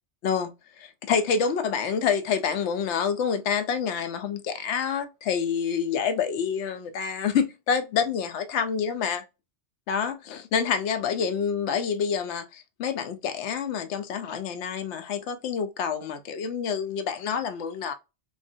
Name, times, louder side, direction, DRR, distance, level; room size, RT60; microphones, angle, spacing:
voice 1, 0.8-9.2 9.9-17.9, left 6 dB, 85° left, 0.9 m, -27 dB
3.5 x 2.0 x 2.6 m
omnidirectional pair, 1.1 m